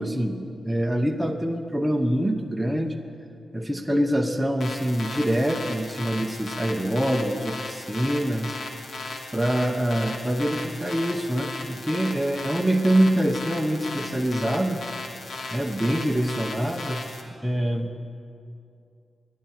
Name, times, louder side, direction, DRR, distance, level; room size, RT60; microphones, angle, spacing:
voice 1, 0.0-3.0 3.5-8.6 9.3-14.8 15.5-18.0, right 1 dB, 5° right, 3 dB, 0.8 m, -25 dB
sound 1, 4.6-17.2, left 2 dB, 65° left, 1.6 m, -36 dB
11.5 x 10.5 x 9.9 m, 2.5 s
wide cardioid pair, 130°, 0 cm